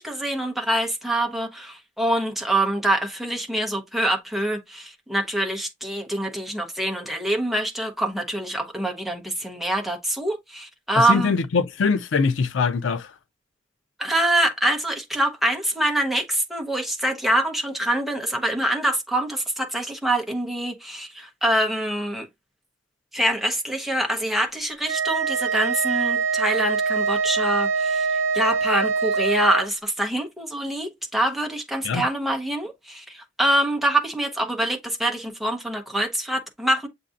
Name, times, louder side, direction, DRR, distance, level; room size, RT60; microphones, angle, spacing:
voice 1, 0.0-11.4 14.0-22.3 23.1-36.9, right 1 dB, ahead, 0.9 m, -25 dB
voice 2, 11.0-13.1 31.8-32.0, left 5 dB, 90° left, 0.4 m, -22 dB
Wind instrument woodwind instrument, 24.9-29.7, right 5 dB, 35° right, 0.7 m, -24 dB
7.4 x 2.6 x 2.5 m
head